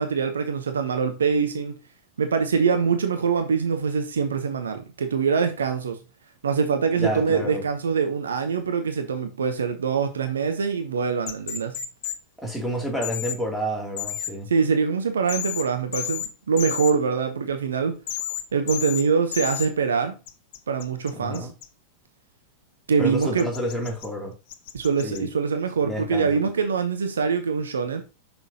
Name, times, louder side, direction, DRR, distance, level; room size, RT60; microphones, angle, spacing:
voice 1, 0.0-1.8 2.2-6.0 6.4-11.8 14.5-18.0 18.5-20.1 20.7-21.5 22.9-23.5 24.7-28.0, right 5 dB, 70° right, 0.8 m, -24 dB
voice 2, 7.0-7.6 12.4-14.5 21.2-21.5 23.0-24.3 25.0-25.3 25.8-26.4, equal, ahead, 2.7 m, -29 dB
sound 1, 11.3-12.2 13.0-13.4 14.0-14.3 15.3-15.6 15.9-16.3 16.6-16.9 18.1-18.4 18.7-19.0 19.3-19.7 20.3-21.6 23.2-24.1 24.5-25.2, left 11 dB, 50° left, 0.8 m, -31 dB
6.1 x 5.9 x 2.8 m
figure-of-eight pair, 90°, 0 cm